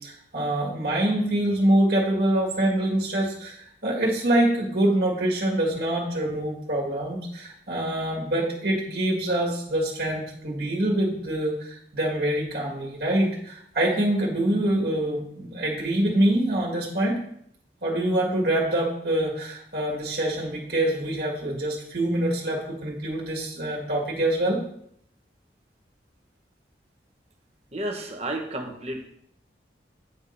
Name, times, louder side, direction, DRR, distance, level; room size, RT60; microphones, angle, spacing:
voice 1, 0.0-17.2 17.8-24.6, right 1 dB, 60° right, -2 dB, 1.9 m, -25 dB
voice 2, 27.7-29.1, right 1 dB, 35° right, 2 dB, 1.1 m, -32 dB
9.0 x 3.7 x 5.3 m, 0.70 s
head